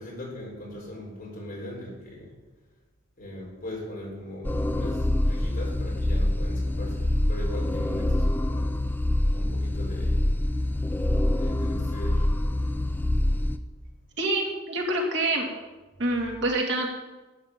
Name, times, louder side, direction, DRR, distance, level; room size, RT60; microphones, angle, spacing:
voice 1, 0.0-2.3 3.2-8.7 9.3-10.2 11.3-12.3, left 1 dB, 45° left, -4 dB, 4.8 m, -39 dB
sound 1, 4.4-13.6, left 1 dB, 10° left, 0.4 m, -25 dB
voice 2, 14.2-15.5 16.0-16.9, right 2 dB, 60° right, 0 dB, 2.3 m, -26 dB
12.0 x 8.4 x 5.9 m, 1.2 s
head